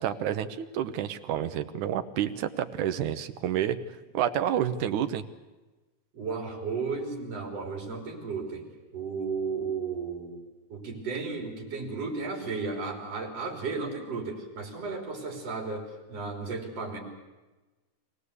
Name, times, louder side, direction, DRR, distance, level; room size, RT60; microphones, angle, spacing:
voice 1, 0.0-3.8 4.1-5.2, right 10 dB, 70° right, 10 dB, 2.3 m, -29 dB
voice 2, 6.1-10.4 10.7-17.0, right 4 dB, 50° right, 1 dB, 4.5 m, -34 dB
24.5 x 17.5 x 8.3 m, 1.2 s
omnidirectional pair, 3.8 m